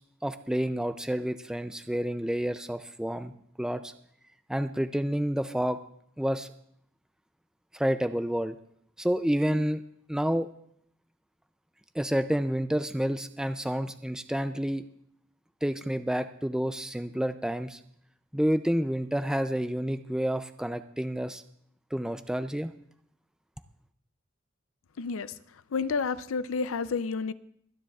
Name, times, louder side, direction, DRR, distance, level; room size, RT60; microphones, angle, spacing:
voice 1, 0.2-3.3 3.6-3.9 4.5-5.8 6.2-6.5 7.7-8.6 9.0-9.8 10.1-10.5 11.9-14.9 15.6-17.8 18.3-21.4 21.9-22.7, equal, 5° right, 9 dB, 0.4 m, -29 dB
voice 2, 25.0-27.3, left 5 dB, 75° left, 15 dB, 0.5 m, -31 dB
28.5 x 10.0 x 2.4 m, 0.69 s
head